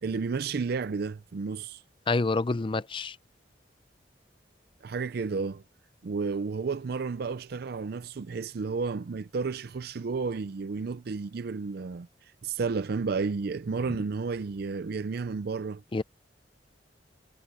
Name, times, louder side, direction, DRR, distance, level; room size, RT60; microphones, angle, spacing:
voice 1, 0.0-1.8 4.8-5.6 6.0-12.1 12.4-15.8, right 4 dB, 60° right, 0.4 m, -32 dB
voice 2, 2.1-3.2 15.9-16.0, left 3 dB, 30° left, 0.5 m, -27 dB
head